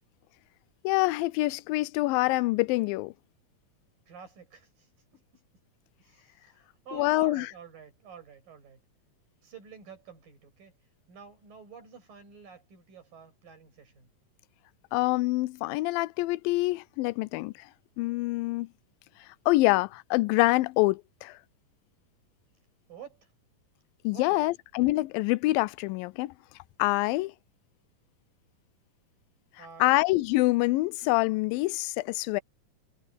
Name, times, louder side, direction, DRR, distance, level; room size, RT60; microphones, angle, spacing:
voice 1, 0.8-3.1 6.9-7.5 14.9-17.7 18.0-18.7 19.5-21.4 24.0-26.3 26.8-27.3 29.8-32.4, left 20 dB, 90° left, 2.3 m, -26 dB
voice 2, 4.1-5.4 6.0-8.8 9.4-10.7 11.1-14.1 22.9-23.3 24.1-24.4 29.6-30.0, right 6 dB, 75° right, 8.5 m, -49 dB
omnidirectional pair, 4.0 m